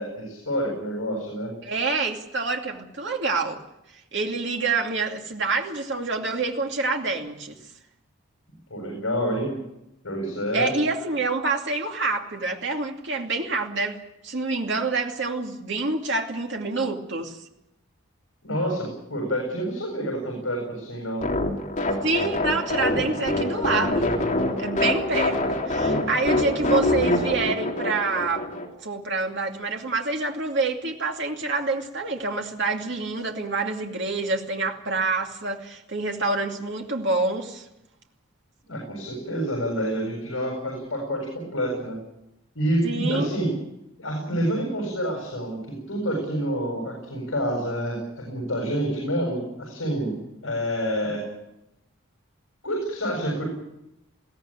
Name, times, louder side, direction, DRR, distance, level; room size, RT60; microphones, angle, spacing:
voice 1, 0.0-1.5 8.7-9.5 10.0-10.7 18.4-21.2 38.7-42.0 42.5-43.5 44.0-51.2 52.6-53.4, equal, 65° left, 0 dB, 7.6 m, -28 dB
voice 2, 1.6-3.6 4.1-7.6 10.5-17.4 22.0-24.1 24.6-28.5 28.8-37.7 42.8-43.3, right 3 dB, 55° right, 2 dB, 2.6 m, -27 dB
sound 1, 21.2-28.7, left 2 dB, 35° left, 3.4 m, -25 dB
22.0 x 16.5 x 9.1 m, 0.86 s
head